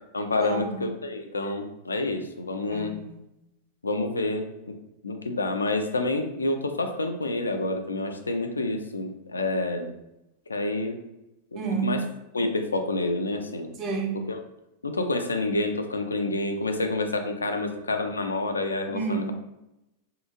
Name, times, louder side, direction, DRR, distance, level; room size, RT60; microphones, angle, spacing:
voice 1, 0.1-2.9 3.8-4.5 5.0-9.9 10.5-11.0 11.5-12.0 12.3-13.7 14.1-14.4 14.8-19.3, left 2 dB, 75° left, 6 dB, 0.3 m, -28 dB
voice 2, 2.7-3.2 11.5-12.0 13.8-14.2 18.9-19.3, right 5 dB, 35° right, 3 dB, 0.5 m, -30 dB
2.6 x 2.4 x 2.7 m, 0.90 s
figure-of-eight pair, 90°, 0 cm